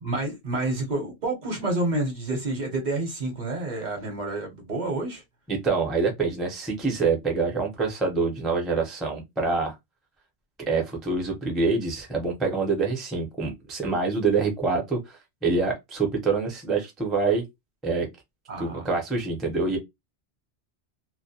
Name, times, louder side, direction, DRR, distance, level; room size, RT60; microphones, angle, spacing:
voice 1, 0.0-5.2 18.5-18.9, right 2 dB, 45° right, 0.8 m, -29 dB
voice 2, 5.5-9.7 10.7-17.4 17.8-18.1 18.6-19.8, right 4 dB, ahead, 0.4 m, -26 dB
2.2 x 2.1 x 2.7 m
omnidirectional pair, 1.2 m